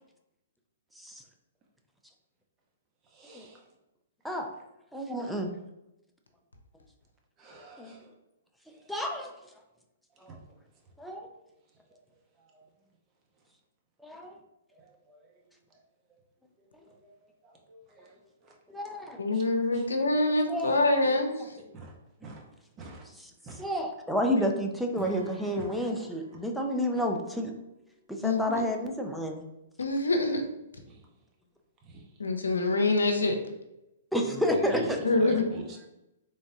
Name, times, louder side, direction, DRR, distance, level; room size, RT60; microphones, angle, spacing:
voice 1, 3.0-3.7 5.2-5.4 7.4-8.1 8.7-8.9 10.3-10.4 11.1-11.2 11.9-12.0 12.4-12.6 14.7-15.4 15.7-15.8 16.1-16.2 16.7-18.8 19.3-19.5 19.7-19.9 20.7-20.8 21.7-22.5 22.8-23.1 23.4-23.7 25.6-25.8 30.9-31.1 31.8-32.1 34.2-35.9, right 2 dB, 25° right, 0 dB, 1.0 m, -45 dB
voice 2, 4.9-5.5 7.8-7.9 8.9-9.3 10.2-10.4 11.0-11.3 14.0-14.4 18.7-19.2 20.5-20.7 23.6-27.5 28.1-29.4 34.1-35.0, equal, ahead, 1 dB, 0.5 m, -30 dB
voice 3, 19.2-21.3 28.2-28.6 29.8-30.4 32.2-33.4 35.0-35.4, left 2 dB, 85° left, 5 dB, 0.6 m, -25 dB
Acoustic guitar / Strum, 24.9-28.2, right 1 dB, 20° left, 1.2 m, -47 dB
3.9 x 3.4 x 2.7 m, 0.90 s
hypercardioid pair, 125°, 0 cm